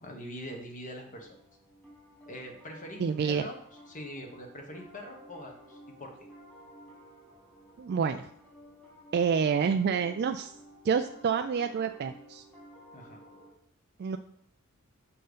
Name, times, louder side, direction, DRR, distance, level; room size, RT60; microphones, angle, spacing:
voice 1, 0.0-1.4 2.3-3.6 3.9-6.1 12.9-13.2, equal, 35° left, 2 dB, 1.3 m, -43 dB
Piano, 1.0-13.5, equal, 5° left, 1.4 m, -54 dB
voice 2, 3.0-3.5 7.8-8.3 9.1-10.6 10.8-12.4 14.0-14.2, right 6 dB, 50° right, 7 dB, 0.3 m, -28 dB
6.5 x 4.4 x 5.1 m, 0.71 s
head